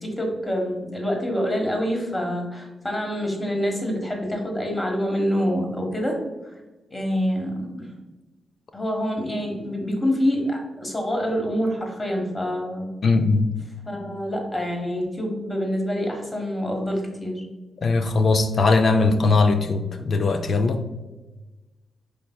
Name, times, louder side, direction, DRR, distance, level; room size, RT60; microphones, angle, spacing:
voice 1, 0.0-6.2 6.9-7.9 8.7-12.9 13.8-17.4, equal, 20° left, 1.2 m, -26 dB
voice 2, 13.0-13.5 17.8-20.8, left 3 dB, 60° left, 0.4 m, -20 dB
5.2 x 3.3 x 2.2 m
cardioid pair, 60°, 0 cm